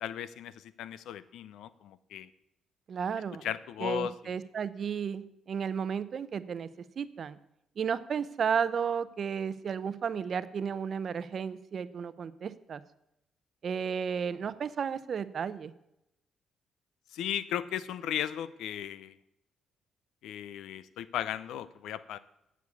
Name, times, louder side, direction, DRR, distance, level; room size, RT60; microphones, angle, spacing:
voice 1, 0.0-2.3 3.4-4.3 17.1-19.2 20.2-22.2, left 10 dB, 85° left, 16 dB, 0.5 m, -36 dB
voice 2, 2.9-3.5 3.8-6.7 7.0-7.4 7.8-12.8 13.6-15.7, right 7 dB, 50° right, 14 dB, 0.6 m, -33 dB
8.1 x 7.2 x 8.4 m, 0.84 s
cardioid pair, 90°, 0 cm